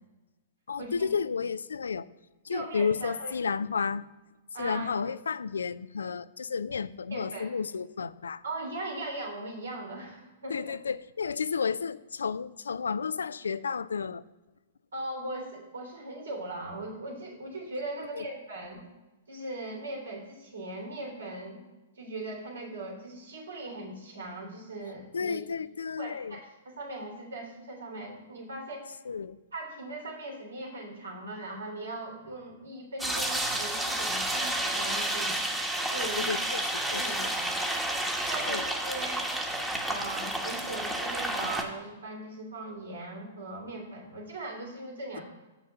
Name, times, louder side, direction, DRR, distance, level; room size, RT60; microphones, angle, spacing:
voice 1, 0.7-2.1 2.4-4.1 4.6-8.4 10.5-14.2 18.1-18.2 25.1-26.4 29.1-29.4 36.0-37.3 38.5-38.6, left 5 dB, 80° left, 16 dB, 0.4 m, -32 dB
voice 2, 2.5-3.3 4.5-5.1 7.1-7.5 8.4-10.7 14.9-18.8 19.3-21.6 21.9-25.4 26.0-29.0 29.5-35.4 35.9-36.4 36.9-37.6 38.3-39.3 39.8-45.2, right 2 dB, 80° right, 0 dB, 3.2 m, -39 dB
sound 1, 33.0-41.6, right 1 dB, 5° right, 1.2 m, -30 dB
7.2 x 5.8 x 6.9 m, 1.1 s
hypercardioid pair, 115°, 0 cm